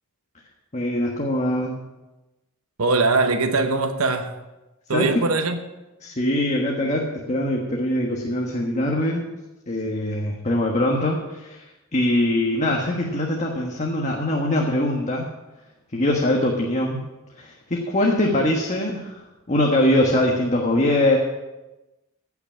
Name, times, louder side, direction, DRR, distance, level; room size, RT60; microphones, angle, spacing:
voice 1, 0.7-1.8 4.9-5.2 6.0-9.3 9.7-11.6 11.9-15.3 15.9-17.0 17.4-19.1 19.5-21.2, left 1 dB, 35° left, 1.4 m, -22 dB
voice 2, 2.8-4.4 4.9-5.6, right 3 dB, 85° right, 1.0 m, -21 dB
16.0 x 6.0 x 7.2 m
head